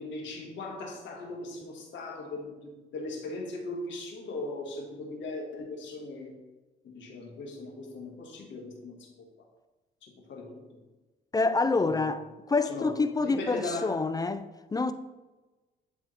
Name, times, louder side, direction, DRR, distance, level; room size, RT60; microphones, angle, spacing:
voice 1, 0.0-6.3 6.8-9.3 10.0-10.8 11.8-12.1 12.7-14.0, left 2 dB, 70° left, 1.6 m, -39 dB
voice 2, 11.3-14.9, left 3 dB, 20° left, 0.3 m, -27 dB
10.5 x 3.5 x 3.2 m
cardioid pair, 90°, 20 cm